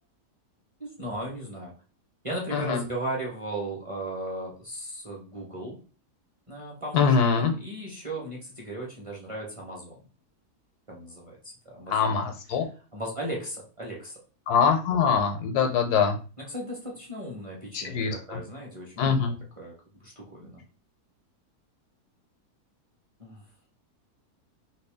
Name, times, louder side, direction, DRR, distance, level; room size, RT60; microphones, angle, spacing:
voice 1, 0.8-1.7 2.2-5.8 6.5-10.0 10.9-12.2 12.9-14.2 16.5-19.7 20.0-20.6 23.2-23.4, right 1 dB, 25° right, -3 dB, 0.8 m, -36 dB
voice 2, 2.5-2.8 6.9-7.5 11.9-12.6 14.5-16.2 17.7-18.4 19.0-19.3, left 6 dB, 80° left, 5 dB, 1.2 m, -23 dB
3.0 x 2.9 x 3.4 m, 0.36 s
omnidirectional pair, 1.7 m